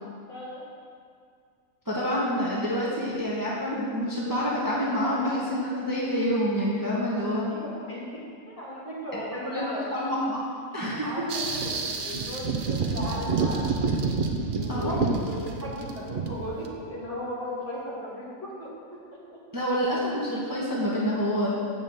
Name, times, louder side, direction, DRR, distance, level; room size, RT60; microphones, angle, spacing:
voice 1, 0.3-0.6 7.5-8.1 8.5-9.9 11.0-13.8 14.5-18.7 20.7-20.8, equal, 35° left, -8 dB, 2.8 m, -36 dB
voice 2, 1.8-7.5 9.1-9.2 9.4-9.6 9.9-10.5 10.7-11.1 14.7-15.0 19.5-21.5, equal, 15° right, -6 dB, 1.3 m, -27 dB
sound 1, 11.3-16.7, right 4 dB, 50° right, 0.7 m, -28 dB
8.2 x 5.5 x 7.2 m, 2.2 s
omnidirectional pair, 1.5 m